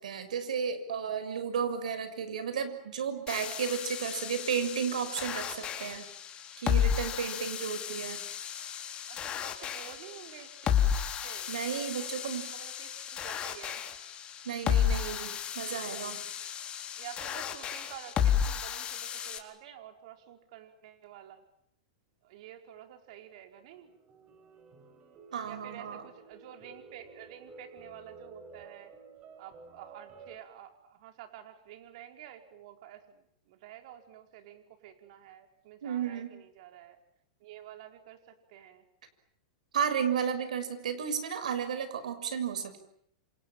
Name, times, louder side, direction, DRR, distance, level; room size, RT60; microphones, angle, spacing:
voice 1, 0.0-6.1 6.6-8.2 11.5-12.5 14.4-16.2 25.3-26.0 35.8-36.4 39.7-42.8, right 7 dB, 85° right, 10 dB, 6.6 m, -33 dB
sound 1, 3.3-19.4, left 9 dB, 25° left, 4.1 m, -33 dB
voice 2, 9.1-10.8 11.2-11.5 12.0-13.8 16.9-21.4 22.2-23.9 25.4-28.9 29.4-37.0 37.4-38.9, right 11 dB, 60° right, 6 dB, 4.9 m, -50 dB
sound 2, 23.7-30.4, right 3 dB, 30° right, 5.5 m, -52 dB
29.5 x 27.5 x 7.4 m, 0.71 s
hypercardioid pair, 130°, 4 cm